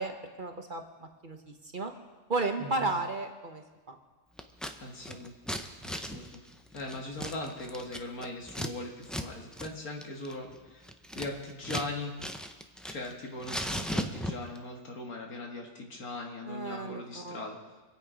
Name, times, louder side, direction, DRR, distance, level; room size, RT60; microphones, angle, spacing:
voice 1, 0.0-1.4 1.7-1.9 2.3-4.0 16.5-17.4, right 3 dB, 40° right, 5 dB, 1.1 m, -34 dB
voice 2, 2.6-2.9 4.8-5.3 5.8-6.4 6.7-12.1 12.9-17.6, left 2 dB, 85° left, 1 dB, 2.5 m, -40 dB
Scissors, 4.4-4.7 5.0-8.7 9.0-9.3 9.5-9.7 10.0-11.9 12.2-13.1 13.4-14.6, equal, ahead, 0.4 m, -37 dB
25.5 x 8.6 x 5.1 m, 1.3 s
omnidirectional pair, 1.5 m